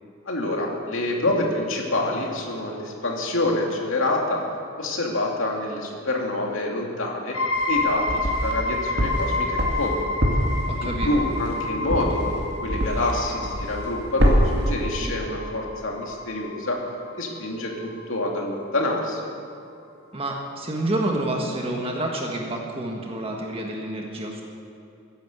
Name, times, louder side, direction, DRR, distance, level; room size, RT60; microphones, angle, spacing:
voice 1, 0.2-4.4 4.8-7.4 7.7-10.1 10.8-16.8 17.2-19.2, left 1 dB, 65° left, 0 dB, 2.6 m, -27 dB
sound 1, 7.3-18.8, left 2 dB, 90° left, 1.5 m, -30 dB
sound 2, 7.6-8.6 9.0-13.2 13.4-13.9 14.2-14.7, equal, 50° right, 2.3 m, -24 dB
voice 2, 10.7-11.2 15.0-15.2 20.1-24.4, right 1 dB, 25° right, 0 dB, 1.6 m, -28 dB
16.0 x 10.5 x 8.0 m, 2.6 s
head